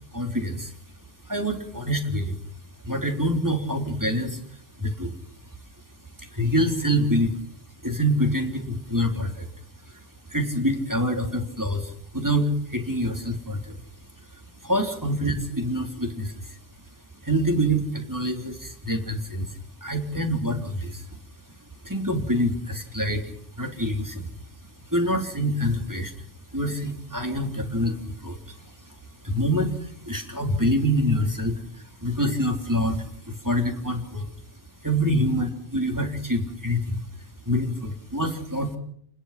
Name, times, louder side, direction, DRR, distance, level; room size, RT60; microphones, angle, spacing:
voice 1, 0.1-0.8 1.2-5.2 5.4-5.5 6.2-7.4 7.8-9.5 9.8-13.8 14.3-16.6 16.8-16.9 17.2-21.6 21.8-24.3 24.8-26.2 26.5-34.3 34.8-38.8, equal, 15° right, 3 dB, 3.7 m, -26 dB
29.0 x 20.5 x 6.0 m, 0.66 s
omnidirectional pair, 1.2 m